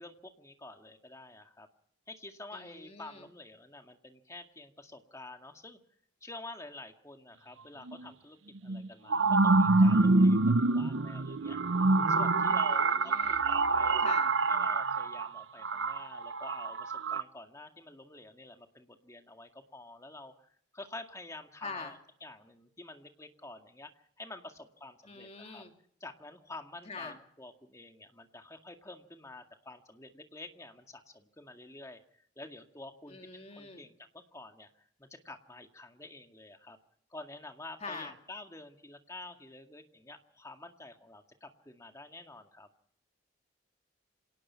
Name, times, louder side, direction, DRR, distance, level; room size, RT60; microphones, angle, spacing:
voice 1, 0.0-1.7 2.1-5.8 6.2-11.6 12.1-14.0 14.5-23.9 24.2-25.6 26.0-34.7 35.0-36.8 37.1-42.7, left 2 dB, 15° left, 5 dB, 2.0 m, -49 dB
voice 2, 2.5-3.3 12.7-13.4 14.0-14.4 21.6-22.0 25.0-25.7 26.8-27.2 33.1-33.8 37.8-38.1, left 4 dB, 35° left, 4 dB, 2.9 m, -43 dB
sound 1, 7.9-8.0 8.7-17.2, right 3 dB, 80° right, 0.9 m, -26 dB
27.0 x 18.5 x 5.8 m, 0.65 s
head